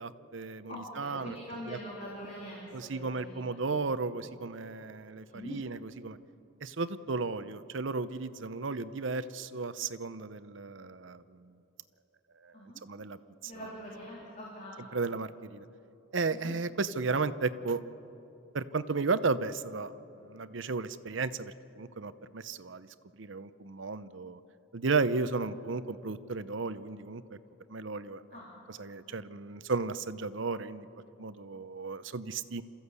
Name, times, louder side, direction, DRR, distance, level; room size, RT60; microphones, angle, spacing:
voice 1, 0.0-1.3 1.7-1.8 2.7-6.2 6.6-11.4 12.4-13.7 14.9-15.6 16.1-17.8 18.5-19.9 20.2-22.9 23.1-24.4 24.7-27.2 27.7-28.2 28.7-30.9 31.2-32.6, right 4 dB, 70° right, 13 dB, 0.7 m, -34 dB
voice 2, 0.7-3.7 5.3-5.6 12.5-12.8 13.4-15.0 16.3-16.6 28.3-28.5, equal, 35° left, -5 dB, 3.5 m, -43 dB
28.0 x 14.5 x 8.3 m, 2.9 s
head